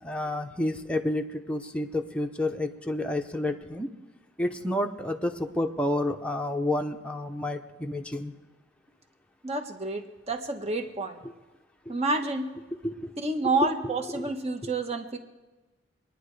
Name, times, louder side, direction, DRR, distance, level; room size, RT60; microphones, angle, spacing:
voice 1, 0.0-3.9 4.4-8.3 11.9-12.0 12.8-13.1 13.8-14.3 14.6-14.7, left 1 dB, 5° left, 3 dB, 0.7 m, -30 dB
voice 2, 9.4-11.2 11.9-12.5 13.2-15.2, right 2 dB, 35° right, 5 dB, 1.2 m, -29 dB
26.0 x 10.0 x 3.3 m, 1.1 s
head